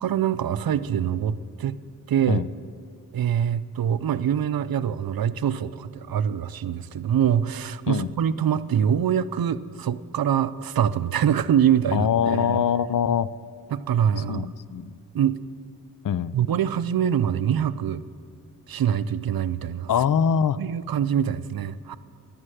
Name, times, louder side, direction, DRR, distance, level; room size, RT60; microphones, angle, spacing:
voice 1, 0.0-1.8 2.1-2.4 3.1-12.6 13.7-14.5 15.1-15.4 16.3-18.0 18.7-19.9 20.6-22.0, right 9 dB, 75° right, 14 dB, 0.6 m, -24 dB
voice 2, 11.9-13.3 14.3-14.9 16.0-16.3 19.9-20.6, left 8 dB, 65° left, 16 dB, 0.5 m, -23 dB
12.0 x 9.8 x 9.1 m, 2.3 s
wide cardioid pair, 110°, 36 cm